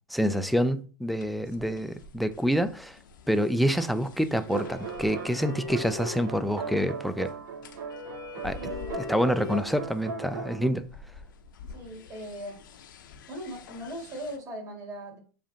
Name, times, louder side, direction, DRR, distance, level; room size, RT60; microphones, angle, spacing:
voice 1, 0.1-3.0 3.3-7.3 8.4-8.6 8.9-10.8, equal, ahead, 0.3 m, -27 dB
sound 1, 1.2-14.4, left 7 dB, 70° left, 0.7 m, -45 dB
sound 2, 4.5-10.7, right 5 dB, 65° right, 0.8 m, -38 dB
voice 2, 8.5-9.2 11.7-12.7 13.3-15.2, equal, 30° right, 2.1 m, -39 dB
7.0 x 2.5 x 2.8 m
hypercardioid pair, 105°, 11 cm